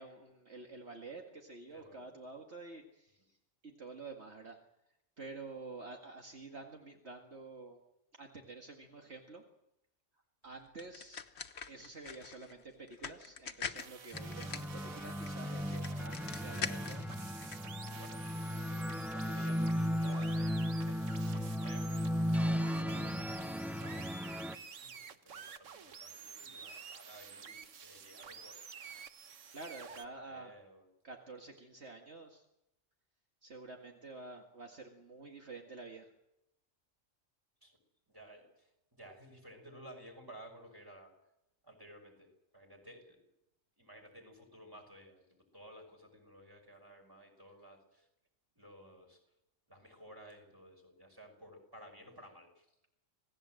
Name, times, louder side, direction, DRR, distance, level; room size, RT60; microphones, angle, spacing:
voice 1, 0.0-3.4 3.6-4.6 5.2-7.8 8.1-9.4 10.4-11.2 11.7-17.0 29.5-30.5 31.0-32.4 33.4-36.1, right 3 dB, 60° right, 2 dB, 2.3 m, -49 dB
voice 2, 1.7-2.1 17.9-28.8 29.9-30.9 37.6-37.8 38.1-41.1 41.6-43.2 43.8-48.1 48.6-49.2 49.7-52.8, equal, 15° right, 3 dB, 6.0 m, -55 dB
sound 1, 10.8-17.6, left 6 dB, 60° left, 1.4 m, -44 dB
sound 2, 13.8-30.1, right 6 dB, 75° right, 1.5 m, -51 dB
sound 3, 14.1-24.5, equal, ahead, 0.6 m, -36 dB
27.5 x 18.5 x 7.7 m, 0.86 s
omnidirectional pair, 1.3 m